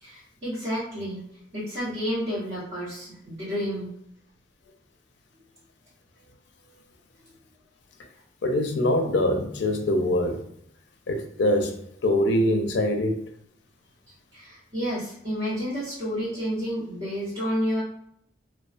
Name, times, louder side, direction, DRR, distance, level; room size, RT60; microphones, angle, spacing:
voice 1, 0.0-1.2 1.5-3.9 14.3-17.8, equal, 35° right, 1.0 m, -30 dB
voice 2, 8.4-10.4 11.1-11.7 12.0-13.2, left 1 dB, 75° left, 0.4 m, -23 dB
2.3 x 2.2 x 2.4 m
head